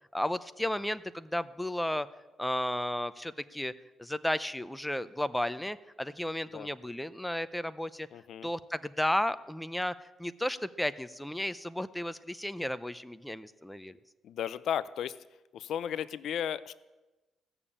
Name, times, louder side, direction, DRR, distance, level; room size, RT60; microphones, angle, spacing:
voice 1, 0.1-2.1 2.4-3.7 4.0-8.1 8.4-14.0, left 1 dB, 5° left, 13 dB, 0.6 m, -33 dB
voice 2, 8.1-8.5 14.2-15.2 15.5-16.7, left 9 dB, 70° left, 16 dB, 0.5 m, -34 dB
16.5 x 7.0 x 8.6 m, 1.1 s
cardioid pair, 90°, 0 cm